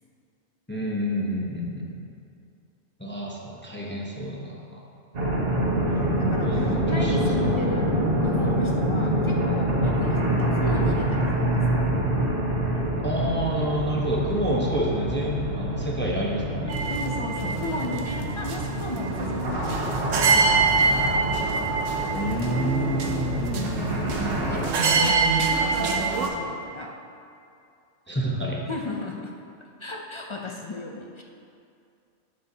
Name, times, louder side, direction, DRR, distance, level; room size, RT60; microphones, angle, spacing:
voice 1, 0.7-2.0 3.0-4.8 6.4-7.6 13.0-16.8 22.1-24.3 28.1-28.6, equal, 10° left, -3 dB, 0.7 m, -29 dB
sound 1, 5.1-24.7, right 1 dB, 50° right, 1.4 m, -26 dB
voice 2, 5.8-7.9 8.2-11.6 16.9-21.4 24.4-27.0 28.7-29.3 29.8-31.2, left 2 dB, 45° left, 0 dB, 0.4 m, -35 dB
sound 2, 16.7-26.3, right 4 dB, 80° right, 1.1 m, -25 dB
11.0 x 7.6 x 2.8 m, 2.5 s
omnidirectional pair, 1.3 m